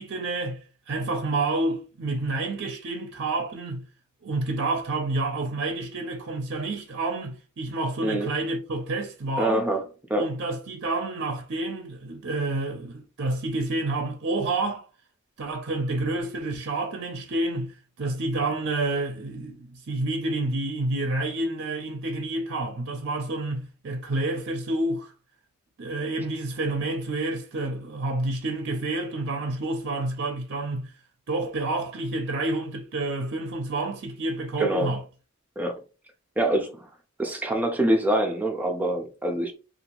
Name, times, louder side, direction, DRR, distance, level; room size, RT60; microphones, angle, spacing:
voice 1, 0.0-3.8 4.2-9.7 10.2-14.9 15.4-25.1 25.8-30.9 31.3-35.0, right 2 dB, 55° right, 0.5 m, -29 dB
voice 2, 9.4-9.8 10.1-10.3 34.6-34.9 35.6-35.8 36.4-36.9 37.2-39.5, right 1 dB, 10° right, 0.5 m, -25 dB
2.7 x 2.4 x 2.9 m
head